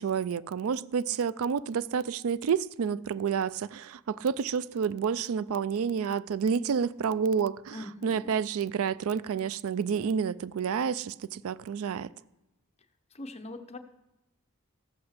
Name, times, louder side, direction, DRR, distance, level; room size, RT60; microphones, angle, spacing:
voice 1, 0.0-7.7 8.0-12.1, right 6 dB, 70° right, 0.4 m, -29 dB
voice 2, 7.7-8.4 13.1-13.8, left 1 dB, 30° left, 0.7 m, -42 dB
14.5 x 6.0 x 6.5 m
head